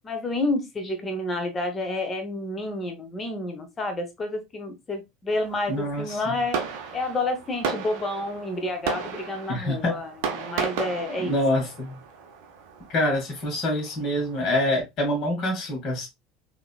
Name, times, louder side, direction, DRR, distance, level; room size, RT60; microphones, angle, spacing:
voice 1, 0.0-6.6 6.9-11.4, left 2 dB, 25° left, 0.9 m, -29 dB
Fireworks, 5.3-14.7, right 6 dB, 60° right, 0.7 m, -35 dB
voice 2, 5.7-6.4 9.5-10.0 11.2-12.0 12.9-16.1, left 1 dB, 45° left, 1.7 m, -26 dB
4.0 x 2.8 x 2.3 m
figure-of-eight pair, 70°, 0 cm